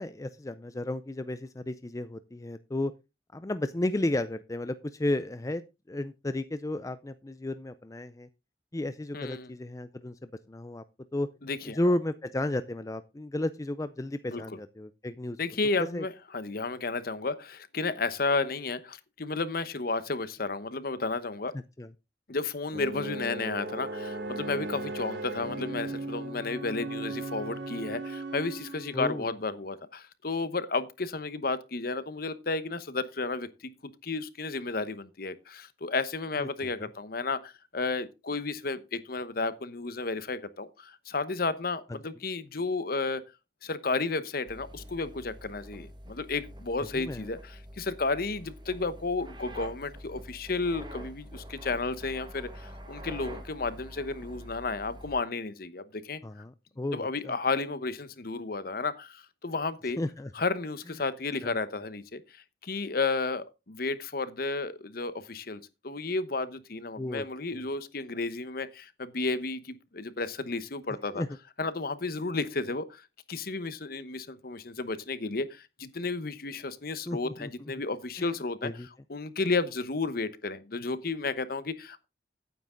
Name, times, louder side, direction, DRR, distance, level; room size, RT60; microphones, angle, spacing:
voice 1, 0.0-2.9 3.3-5.6 5.9-8.3 8.7-10.8 11.1-11.3 11.7-15.4 15.8-16.1 21.5-21.9 28.9-29.3 36.4-36.5 41.9-42.0 46.8-47.3 56.2-57.3 60.0-60.3 61.4-61.5 67.0-67.3 71.1-71.3 77.1-77.5 78.2-78.3 78.6-78.9, left 1 dB, 20° left, 0.5 m, -33 dB
voice 2, 9.1-9.5 11.4-11.8 14.3-14.4 15.4-21.5 22.3-43.2 43.6-56.2 56.9-60.0 60.3-71.2 71.6-73.0 73.3-78.7 79.1-82.0, left 3 dB, 55° left, 1.0 m, -32 dB
sound 1, 22.7-29.1, right 2 dB, 90° right, 3.0 m, -37 dB
sound 2, 44.5-55.2, equal, 25° right, 1.6 m, -46 dB
9.7 x 9.3 x 3.8 m
head